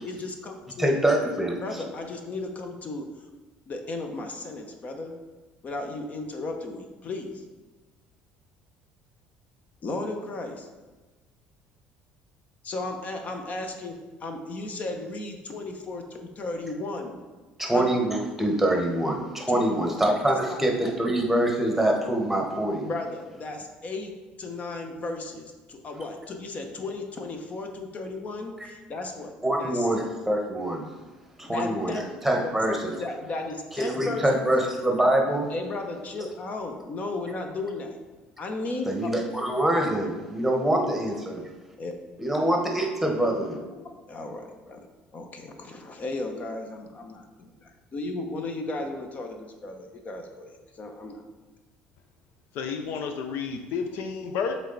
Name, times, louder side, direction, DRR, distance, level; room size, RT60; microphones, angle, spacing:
voice 1, 0.0-0.9 1.6-3.1 3.7-5.2 5.6-7.4 9.8-10.7 12.6-17.2 17.7-17.9 19.5-19.9 20.5-20.9 22.7-24.1 24.4-29.3 29.6-30.1 31.4-32.1 32.4-32.6 33.0-34.3 35.5-38.0 38.4-39.1 40.8-41.0 41.8-41.9 43.5-44.9 45.1-51.2 54.2-54.4, left 2 dB, 40° left, 4 dB, 0.8 m, -35 dB
voice 2, 0.8-1.6 17.6-22.9 29.4-30.8 31.4-31.9 32.2-32.9 33.8-35.5 38.9-41.4 42.2-43.6, right 1 dB, 5° right, 1 dB, 1.2 m, -24 dB
voice 3, 52.5-54.6, left 6 dB, 70° left, 5 dB, 0.6 m, -31 dB
7.2 x 3.4 x 4.0 m, 1.2 s
supercardioid pair, 90°, 4 cm